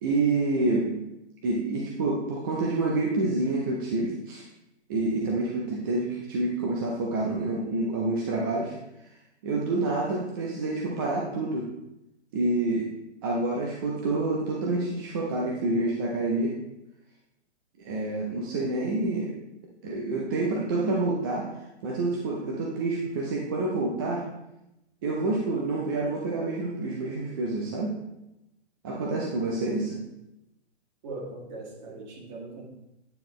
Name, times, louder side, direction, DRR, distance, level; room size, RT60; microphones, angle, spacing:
voice 1, 0.0-0.9 1.4-4.5 4.9-8.8 9.4-11.7 12.3-12.9 13.2-16.5 17.8-19.3 19.8-21.5 21.8-24.2 25.0-28.0 28.8-30.0, right 2 dB, 20° right, -3 dB, 0.5 m, -28 dB
voice 2, 31.0-32.7, right 2 dB, 40° right, -1 dB, 1.9 m, -40 dB
9.0 x 3.9 x 3.1 m, 0.90 s
hypercardioid pair, 145°, 35 cm